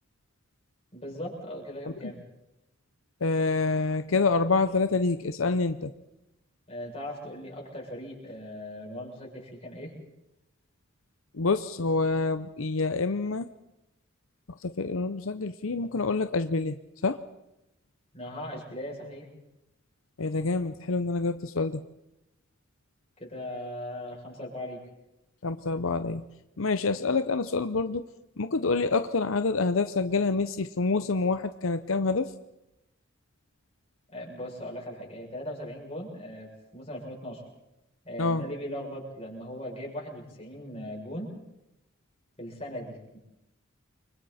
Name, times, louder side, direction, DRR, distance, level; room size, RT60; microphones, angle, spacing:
voice 1, 0.9-2.2 6.7-9.9 18.1-19.3 23.2-24.8 34.1-37.4 38.0-41.3 42.4-43.2, left 1 dB, 30° left, -2 dB, 7.1 m, -39 dB
voice 2, 3.2-5.9 11.3-13.5 14.6-16.8 17.0-17.2 20.2-21.8 25.4-26.2 26.6-28.0 28.4-32.3 38.2-38.4, left 3 dB, 80° left, 10 dB, 0.8 m, -27 dB
30.0 x 24.5 x 4.3 m, 0.90 s
head